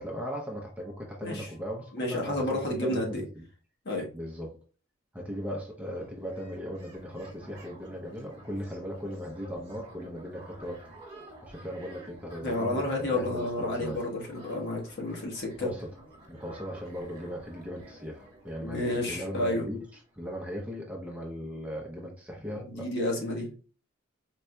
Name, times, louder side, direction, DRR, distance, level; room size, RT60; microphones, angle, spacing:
voice 1, 0.0-3.4 4.1-4.6 5.1-10.8 11.4-14.0 15.6-15.9 16.3-19.8 20.1-22.9, equal, 5° right, 0.6 m, -38 dB
voice 2, 1.9-3.2 3.8-4.1 12.4-15.7 18.6-19.6 22.6-23.5, left 1 dB, 55° left, 1.1 m, -31 dB
sound 1, 5.8-20.4, equal, 30° right, 1.6 m, -52 dB
4.3 x 2.7 x 2.2 m
head